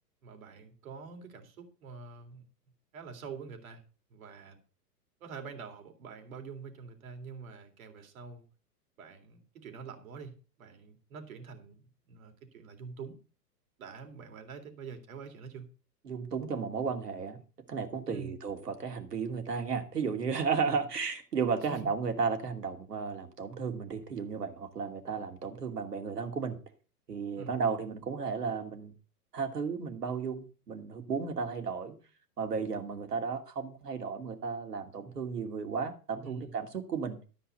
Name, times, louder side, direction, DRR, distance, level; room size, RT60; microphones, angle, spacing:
voice 1, 0.2-2.4 2.9-3.8 4.1-4.6 5.2-8.4 9.0-10.3 10.6-13.2 13.8-15.6 18.1-18.3 20.7-20.8 21.7-21.9 27.4-27.5 36.2-36.5, right 5 dB, 55° right, 4 dB, 3.5 m, -46 dB
voice 2, 16.0-17.4 17.7-26.6 27.1-28.9 29.3-31.9 32.4-37.2, right 5 dB, 75° right, 5 dB, 2.8 m, -34 dB
13.0 x 5.7 x 6.8 m, 0.36 s
figure-of-eight pair, 110°, 48 cm